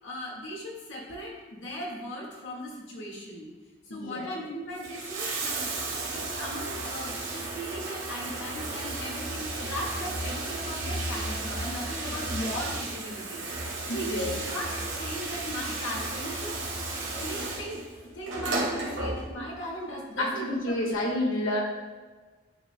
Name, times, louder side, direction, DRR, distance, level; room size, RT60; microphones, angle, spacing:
voice 1, 0.0-3.5 3.8-5.7 6.1-14.7 15.0-16.6 17.1-17.8 18.1-21.1, equal, 65° left, -3 dB, 1.8 m, -38 dB
voice 2, 3.9-4.3 13.9-14.3 20.2-21.6, left 1 dB, 80° left, -2 dB, 1.6 m, -29 dB
Bathtub (filling or washing), 4.6-19.6 20.7-20.8, right 2 dB, 65° right, 1.9 m, -34 dB
10.5 x 4.8 x 2.2 m, 1.4 s
head